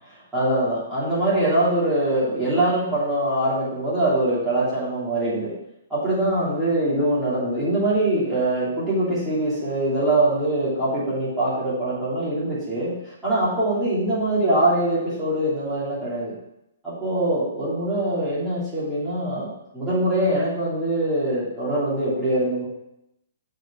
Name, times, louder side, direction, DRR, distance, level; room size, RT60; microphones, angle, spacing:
voice 1, 0.3-5.5 5.9-16.3 16.8-19.5 19.7-22.7, right 1 dB, 5° right, -11 dB, 3.0 m, -23 dB
6.1 x 4.9 x 5.7 m, 0.83 s
hypercardioid pair, 160°, 0 cm